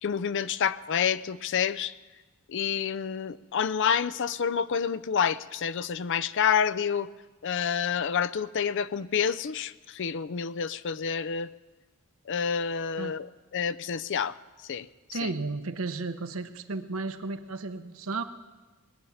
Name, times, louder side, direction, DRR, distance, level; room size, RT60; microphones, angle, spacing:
voice 1, 0.0-1.9 2.5-7.1 7.4-11.5 12.3-13.3 13.5-14.3 14.7-15.3, left 7 dB, 60° left, 14 dB, 0.5 m, -28 dB
voice 2, 15.1-18.2, right 3 dB, 75° right, 8 dB, 1.0 m, -33 dB
20.0 x 7.1 x 9.4 m, 1.2 s
head